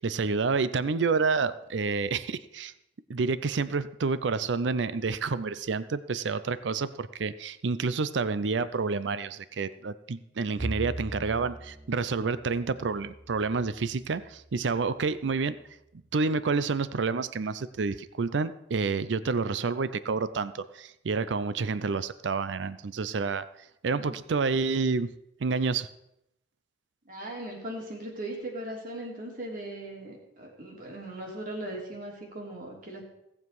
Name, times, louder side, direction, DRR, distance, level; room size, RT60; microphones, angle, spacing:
voice 1, 0.0-2.7 3.1-15.6 16.1-23.4 23.8-25.1 25.4-25.9, right 4 dB, 80° right, 14 dB, 0.5 m, -29 dB
Bowed string instrument, 10.6-15.0, right 1 dB, 15° right, 0.3 m, -41 dB
voice 2, 27.1-33.0, right 1 dB, 50° right, -1 dB, 3.2 m, -38 dB
17.5 x 7.4 x 4.7 m, 0.83 s
head